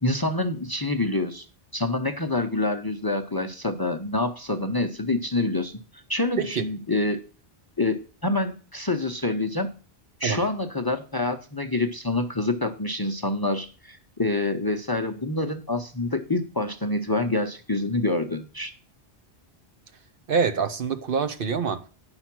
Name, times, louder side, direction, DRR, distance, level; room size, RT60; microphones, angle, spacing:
voice 1, 0.0-1.5 1.7-7.2 7.8-9.7 10.2-18.7, left 2 dB, 25° left, 0.6 m, -27 dB
voice 2, 20.3-21.9, right 6 dB, 60° right, 0.9 m, -25 dB
9.7 x 5.7 x 6.0 m
omnidirectional pair, 1.1 m